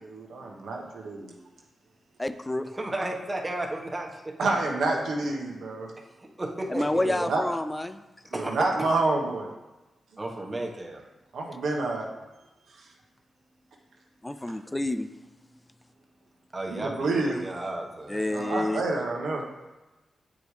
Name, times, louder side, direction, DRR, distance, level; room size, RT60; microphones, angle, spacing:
voice 1, 0.0-1.3 4.4-5.9 6.9-7.4 8.3-9.5 11.3-12.1 16.7-17.4 18.3-19.4, right 2 dB, 80° right, 0 dB, 1.1 m, -28 dB
voice 2, 2.2-2.7 6.7-8.0 14.2-15.1 18.1-18.8, left 1 dB, 15° left, 11 dB, 0.4 m, -28 dB
voice 3, 2.7-4.3 6.4-7.1 8.3-9.0 10.2-11.0 16.5-18.2, right 1 dB, 25° right, 0 dB, 1.3 m, -33 dB
8.5 x 5.0 x 3.3 m, 1.1 s
cardioid pair, 60°, 0 cm